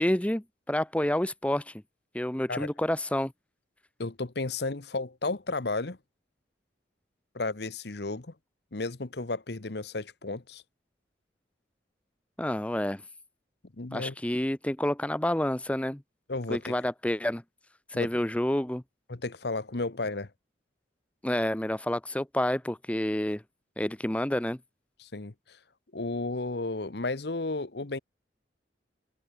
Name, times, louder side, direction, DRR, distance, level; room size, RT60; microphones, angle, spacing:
voice 1, 0.0-1.7 2.1-3.3 12.4-13.0 13.9-16.0 16.5-17.4 17.9-18.8 21.2-23.4 23.8-24.6, left 1 dB, 5° left, 0.6 m, -29 dB
voice 2, 4.0-6.0 7.3-8.3 8.7-10.6 13.8-14.1 16.3-16.7 17.9-18.1 19.1-20.3 25.0-25.6 25.9-28.0, left 3 dB, 60° left, 1.1 m, -33 dB
head